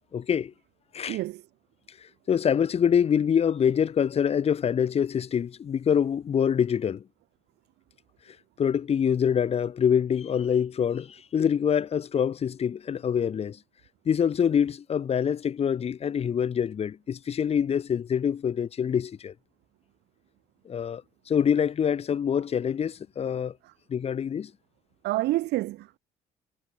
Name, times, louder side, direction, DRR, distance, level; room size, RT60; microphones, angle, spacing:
voice 1, 0.1-0.5 0.9-1.2 2.3-7.0 8.6-13.6 14.1-19.3 20.7-21.0 21.3-23.5 23.9-24.5, left 8 dB, 35° left, 0.9 m, -25 dB
voice 2, 1.1-1.4 23.6-23.7 25.0-26.0, right 17 dB, 80° right, 1.8 m, -28 dB
cardioid pair, 110°, 17 cm